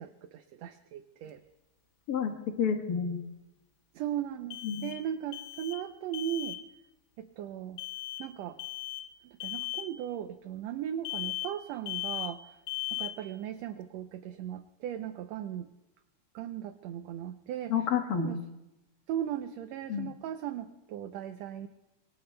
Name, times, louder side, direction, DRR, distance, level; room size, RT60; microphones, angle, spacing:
voice 1, 0.0-1.4 3.9-6.6 7.2-7.8 8.2-8.6 9.2-12.4 12.9-15.7 16.3-17.7 18.2-18.4 19.1-21.7, right 10 dB, 75° right, 8 dB, 1.7 m, -37 dB
sound 1, 1.2-1.3 4.5-5.9 6.1-6.6 7.8-8.3 8.6-9.1 9.4-9.9 11.0-11.6 11.9-12.4 12.7-13.2, left 18 dB, 75° left, 1.9 m, -37 dB
voice 2, 2.6-3.2 4.6-4.9 17.7-18.4 19.9-20.1, left 7 dB, 50° left, 4 dB, 1.2 m, -29 dB
26.5 x 24.0 x 2.2 m, 0.96 s
omnidirectional pair, 3.4 m